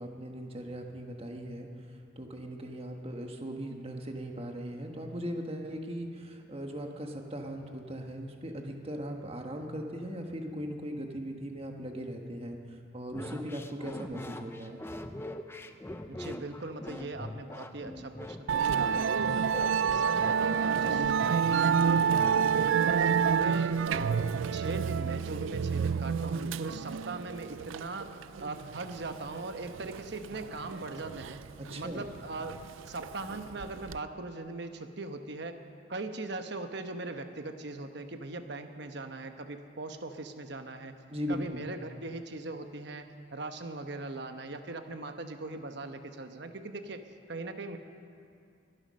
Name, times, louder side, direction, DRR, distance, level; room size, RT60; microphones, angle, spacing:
voice 1, 0.0-1.7 2.2-12.6 12.9-14.8 31.6-32.1 41.1-41.7, equal, 30° right, 3 dB, 1.4 m, -38 dB
sound 1, 13.1-22.8, left 1 dB, 10° left, 0.6 m, -42 dB
voice 2, 16.1-19.5 19.9-22.4 22.8-31.4 31.8-32.5 32.9-35.6 35.9-40.9 41.3-47.0 47.3-47.8, right 2 dB, 55° right, 7 dB, 1.0 m, -40 dB
Musical instrument, 18.5-34.0, right 7 dB, 75° right, 0.4 m, -29 dB
22.5 x 9.8 x 6.4 m, 2.5 s
head